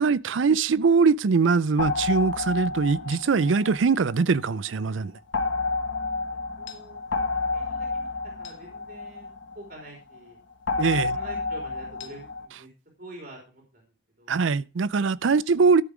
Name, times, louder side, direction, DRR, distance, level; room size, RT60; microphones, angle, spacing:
voice 1, 0.0-5.1 10.8-11.1 14.3-15.8, right 5 dB, 75° right, 0.5 m, -22 dB
sound 1, 1.8-4.6 5.3-9.9 10.7-12.5, left 3 dB, 70° left, 1.2 m, -30 dB
voice 2, 6.1-8.1 8.4-10.4 10.9-12.7 13.0-13.8 14.2-14.4 15.2-15.3, right 1 dB, 50° right, 3.4 m, -46 dB
13.0 x 6.8 x 5.0 m
head